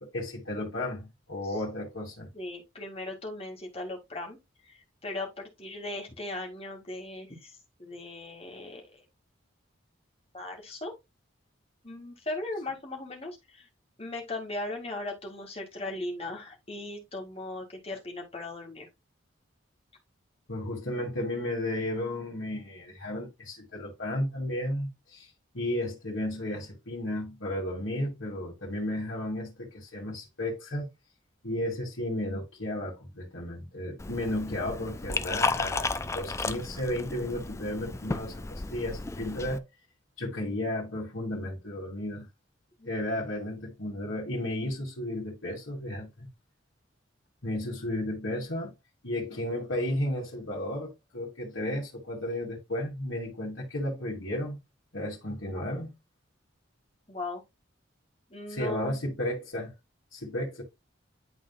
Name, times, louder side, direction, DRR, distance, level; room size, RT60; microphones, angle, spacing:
voice 1, 0.0-2.3 20.5-25.3 25.5-30.9 31.4-39.6 40.2-42.3 42.8-46.3 47.4-48.7 49.0-54.6 54.9-55.9 58.5-59.7 60.1-60.6, left 1 dB, 75° left, 2.4 m, -33 dB
voice 2, 2.3-4.4 4.6-9.0 10.3-10.9 11.8-13.7 14.0-18.9 42.8-43.0 55.5-55.6 57.1-57.4 58.3-58.9, left 2 dB, 30° left, 2.0 m, -38 dB
Liquid, 34.0-39.6, left 3 dB, 15° left, 0.3 m, -33 dB
11.0 x 3.9 x 2.3 m
head